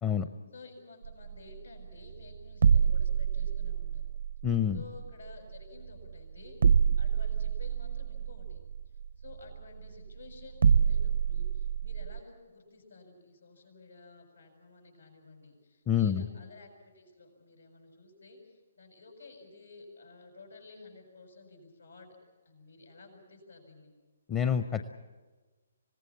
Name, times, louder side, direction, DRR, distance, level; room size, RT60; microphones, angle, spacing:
voice 1, 0.5-4.0 4.7-8.6 9.2-22.2 22.4-23.9, left 3 dB, 85° left, 3 dB, 6.5 m, -53 dB
sound 1, 1.0-12.2, right 7 dB, 65° right, 0.6 m, -28 dB
voice 2, 4.4-4.8 15.9-16.2 24.3-24.9, left 8 dB, 20° left, 9 dB, 0.7 m, -27 dB
26.0 x 18.5 x 7.3 m, 1.3 s
figure-of-eight pair, 140°, 0 cm